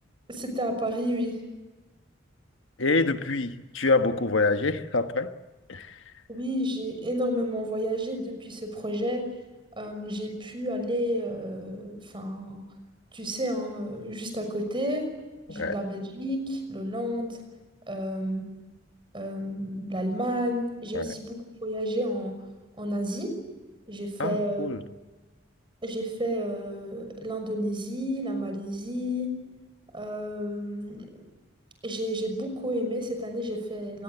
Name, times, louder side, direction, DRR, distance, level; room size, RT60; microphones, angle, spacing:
voice 1, 0.3-1.4 6.3-9.2 9.8-12.6 13.1-15.1 15.5-17.4 17.9-18.4 19.1-22.3 22.8-23.3 23.9-24.7 25.8-29.3 29.9-31.1 31.8-34.0, equal, 25° right, 6.1 m, -31 dB
voice 2, 2.8-5.3 5.7-6.0 15.5-15.8 20.9-21.1 24.2-24.8, left 3 dB, 70° left, 1.4 m, -26 dB
26.5 x 21.0 x 8.1 m
head